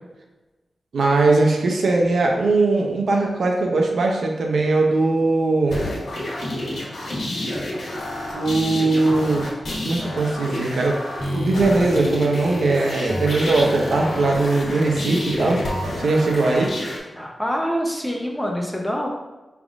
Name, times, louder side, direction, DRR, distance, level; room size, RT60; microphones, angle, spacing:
voice 1, 0.9-5.8 8.3-9.5 9.8-11.0 11.3-16.7, right 3 dB, 80° right, 1 dB, 0.7 m, -20 dB
sound 1, 5.7-17.0, left 1 dB, 90° left, 1.2 m, -28 dB
voice 2, 17.1-19.1, equal, 5° left, 0 dB, 0.6 m, -25 dB
5.1 x 3.5 x 2.4 m, 1.1 s
wide cardioid pair, 155°, 0 cm